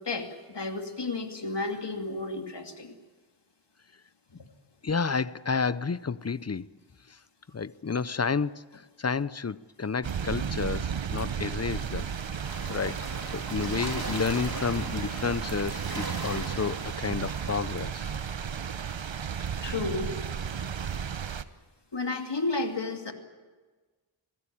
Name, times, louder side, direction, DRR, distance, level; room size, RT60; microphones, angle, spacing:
voice 1, 0.0-3.0 4.4-4.5 13.6-13.8 19.6-20.1 21.9-23.1, left 3 dB, 60° left, 2.7 m, -32 dB
voice 2, 4.8-6.7 7.5-8.6 9.0-12.1 12.7-13.0 13.3-18.1, left 5 dB, 35° left, 0.6 m, -30 dB
sound 1, 10.0-21.4, right 7 dB, 70° right, 1.0 m, -34 dB
sound 2, 11.7-17.8, right 2 dB, 50° right, 3.7 m, -39 dB
27.0 x 17.0 x 8.6 m
wide cardioid pair, 55°, 47 cm